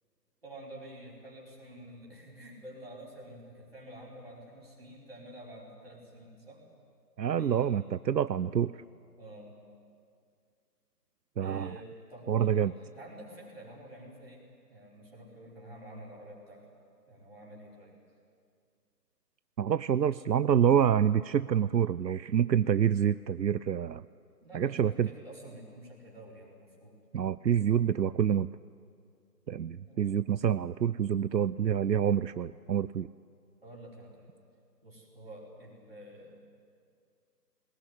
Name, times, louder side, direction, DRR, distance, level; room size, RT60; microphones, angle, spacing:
voice 1, 0.4-6.6 7.2-8.0 9.2-9.6 11.4-16.7 17.1-17.9 24.4-27.0 29.9-30.3 33.6-34.3 34.8-36.4, right 1 dB, 35° right, -4 dB, 5.2 m, -49 dB
voice 2, 7.2-8.7 11.4-11.7 12.3-12.7 19.6-24.0 24.5-25.1 27.1-28.5 29.5-33.1, right 9 dB, 80° right, 16 dB, 0.6 m, -27 dB
20.0 x 19.0 x 9.8 m, 2.3 s
figure-of-eight pair, 180°, 49 cm